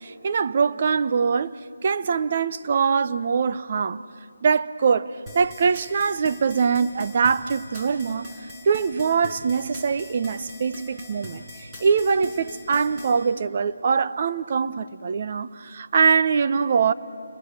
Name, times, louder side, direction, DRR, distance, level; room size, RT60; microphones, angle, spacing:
voice 1, 0.0-1.6 1.8-4.0 4.4-8.3 8.6-16.9, right 5 dB, 40° right, 0.7 m, -23 dB
sound 1, 5.3-13.1, equal, 15° right, 6.3 m, -40 dB
29.0 x 21.5 x 8.0 m
figure-of-eight pair, 160°, 0 cm